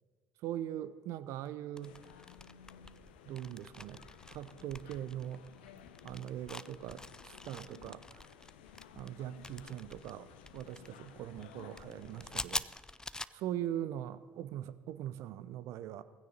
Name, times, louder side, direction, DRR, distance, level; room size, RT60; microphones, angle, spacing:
voice 1, 0.4-2.0 3.3-4.0 4.3-5.4 6.0-8.2 9.0-12.6 13.3-16.0, right 11 dB, 65° right, 0.7 m, -41 dB
sound 1, 1.8-12.4, left 9 dB, 85° left, 0.8 m, -56 dB
sound 2, 1.8-13.3, left 2 dB, 15° left, 0.5 m, -47 dB
17.5 x 15.5 x 4.1 m
hypercardioid pair, 55°, 5 cm